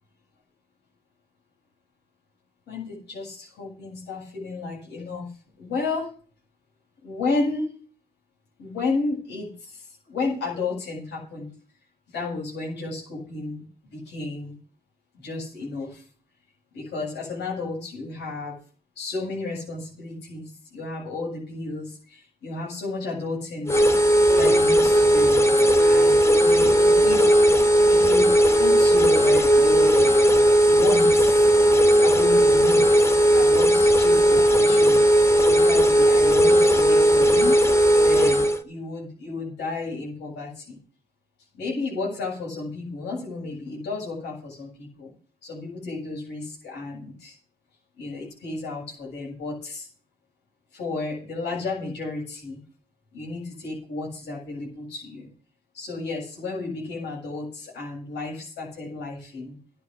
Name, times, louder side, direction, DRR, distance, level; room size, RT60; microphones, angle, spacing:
voice 1, 2.7-5.3 5.6-6.1 7.0-7.7 8.6-11.5 12.1-13.6 13.9-14.6 15.1-16.0 16.7-18.6 19.0-23.7 24.3-25.5 25.8-27.2 27.9-30.1 30.7-31.5 32.0-35.0 35.4-37.6 38.0-40.8 41.5-45.1 45.4-47.4 48.0-49.9 50.7-52.6 53.1-55.3 55.7-59.6, left 3 dB, 85° left, -2 dB, 7.8 m, -32 dB
sound 1, 23.7-38.6, right 1 dB, 15° left, 2.1 m, -17 dB
12.5 x 9.9 x 6.9 m, 0.41 s
supercardioid pair, 60°, 17 cm